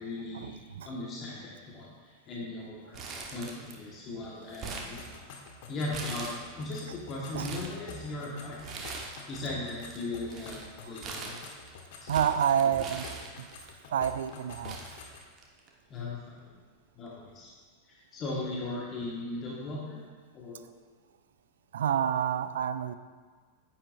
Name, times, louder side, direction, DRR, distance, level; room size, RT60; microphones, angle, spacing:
voice 1, 0.0-0.6 0.8-5.0 5.7-8.6 9.3-11.4 12.0-12.4 15.9-16.6 16.9-17.5 17.9-20.0 20.3-20.6, left 2 dB, 30° left, -4 dB, 1.5 m, -38 dB
Crumpling crinkling, 2.9-3.9 4.2-5.5 5.9-6.7 7.2-7.8 8.6-9.4 9.6-13.7 14.3-14.4 14.6-15.7 16.0-16.1 17.1-17.3, right 4 dB, 30° right, 1.1 m, -42 dB
sound 1, 5.0-15.3, left 4 dB, 50° left, 1.1 m, -48 dB
voice 2, 12.1-13.0 13.4-13.5 13.9-14.8 21.7-22.9, right 9 dB, 60° right, 13 dB, 0.4 m, -28 dB
9.8 x 9.1 x 2.6 m, 1.5 s
figure-of-eight pair, 90°, 0 cm